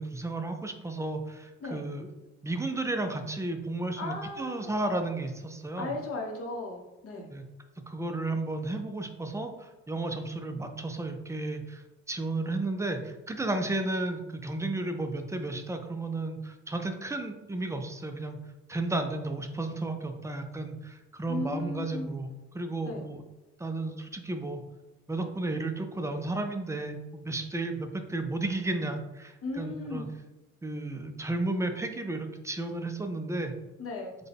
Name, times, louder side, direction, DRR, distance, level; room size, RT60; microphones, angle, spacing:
voice 1, 0.0-2.1 2.4-5.9 7.3-7.4 7.9-18.4 18.7-23.2 23.6-24.6 25.1-30.1 30.6-33.5, right 2 dB, 10° right, 6 dB, 0.3 m, -33 dB
voice 2, 4.0-4.7 5.8-7.3 21.3-22.1 22.8-23.0 29.4-30.1 33.8-34.2, left 3 dB, 50° left, 0 dB, 0.8 m, -36 dB
3.9 x 2.1 x 3.4 m, 1.1 s
cardioid pair, 90°, 30 cm